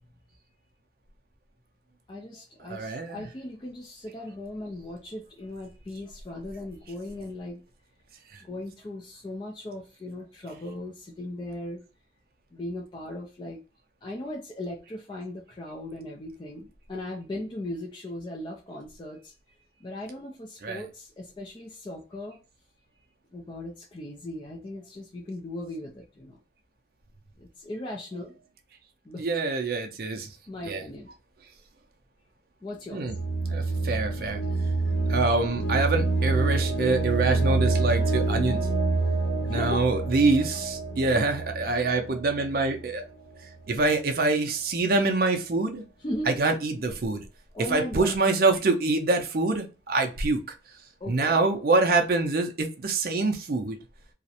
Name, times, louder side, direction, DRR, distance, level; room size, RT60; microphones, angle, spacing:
voice 1, 2.1-7.6 8.4-11.8 12.5-13.6 14.0-19.3 19.8-22.4 23.3-26.4 27.4-28.3 29.0-29.3 30.5-31.1 32.6-33.1 39.5-39.9 46.0-46.3 47.5-48.1 51.0-51.4, left 1 dB, 25° left, 0.3 m, -38 dB
voice 2, 2.6-3.3 20.6-20.8 28.1-28.2 29.2-30.3 30.6-30.9 32.9-33.2 33.5-34.4 35.1-38.6 39.5-43.0 43.7-45.8 46.2-47.2 47.6-50.4 51.1-53.8, right 3 dB, 50° right, 0.5 m, -25 dB
sound 1, 33.1-42.9, right 3 dB, 80° left, 0.6 m, -27 dB
2.4 x 2.0 x 2.7 m
head